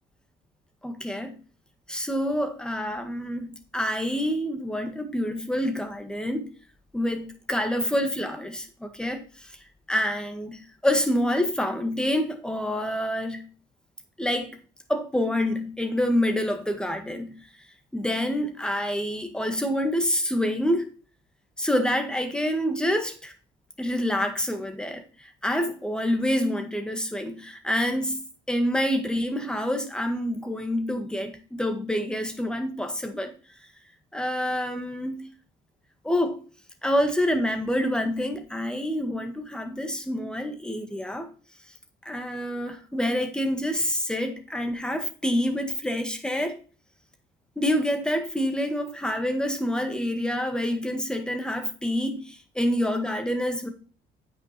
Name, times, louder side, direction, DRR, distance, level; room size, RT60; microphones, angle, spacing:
voice 1, 0.8-1.3 1.9-6.5 6.9-9.5 9.9-13.4 14.2-14.6 14.9-17.3 17.9-20.9 21.6-23.3 23.8-28.2 28.5-33.3 34.1-35.3 36.0-36.5 36.8-41.3 42.1-46.6 47.6-53.7, equal, 5° left, 1.8 m, -27 dB
9.1 x 6.1 x 4.3 m
cardioid pair, 110°, 17 cm